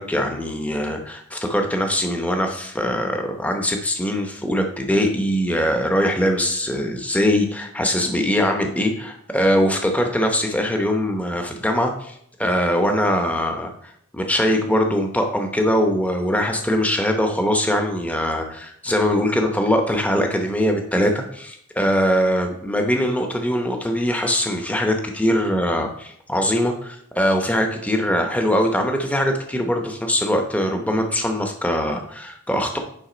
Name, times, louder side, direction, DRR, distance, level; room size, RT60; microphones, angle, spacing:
voice 1, 0.0-12.1 12.4-13.7 14.1-32.8, equal, 5° left, 3 dB, 0.8 m, -22 dB
9.9 x 3.6 x 5.0 m, 0.69 s
head